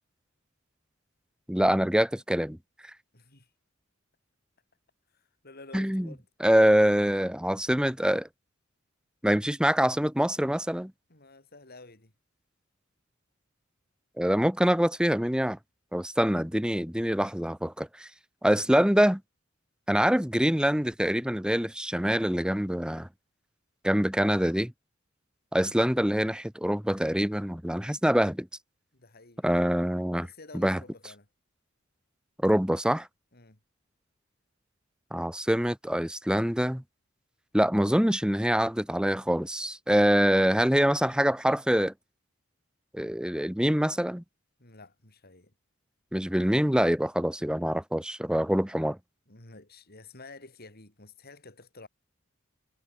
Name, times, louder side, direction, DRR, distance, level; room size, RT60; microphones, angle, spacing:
voice 1, 1.5-2.6 5.7-6.1 6.4-8.3 9.2-10.9 14.2-15.6 15.9-18.1 18.4-19.2 19.9-23.1 23.8-24.7 25.5-28.5 29.4-30.3 30.5-30.8 32.4-33.1 35.1-36.8 37.5-41.9 42.9-44.2 46.1-49.0, equal, 5° right, 1.3 m, -25 dB
voice 2, 3.1-3.5 5.1-6.2 11.1-12.1 28.9-29.4 30.2-31.3 33.3-33.6 44.6-45.5 49.3-51.9, left 3 dB, 50° left, 4.8 m, -50 dB
head